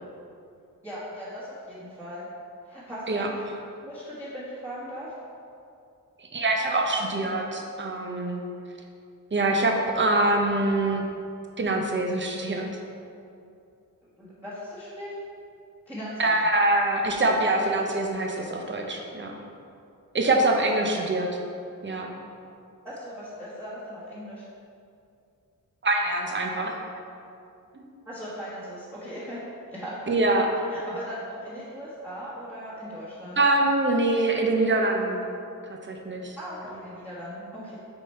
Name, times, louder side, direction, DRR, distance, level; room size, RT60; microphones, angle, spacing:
voice 1, 0.8-2.3 2.6-3.4 3.8-5.1 14.2-15.1 15.9-16.4 20.4-21.0 22.8-24.4 28.0-29.4 29.7-30.2 30.7-33.4 36.4-37.8, equal, 5° right, -12 dB, 1.4 m, -38 dB
voice 2, 6.3-8.4 9.3-11.0 11.6-12.7 16.2-19.3 20.1-21.3 21.8-22.1 25.8-26.8 27.7-27.8 30.1-30.6 33.4-35.2 35.7-36.4, right 2 dB, 35° right, 2 dB, 0.8 m, -24 dB
6.7 x 4.1 x 4.4 m, 2.5 s
wide cardioid pair, 95°, 35 cm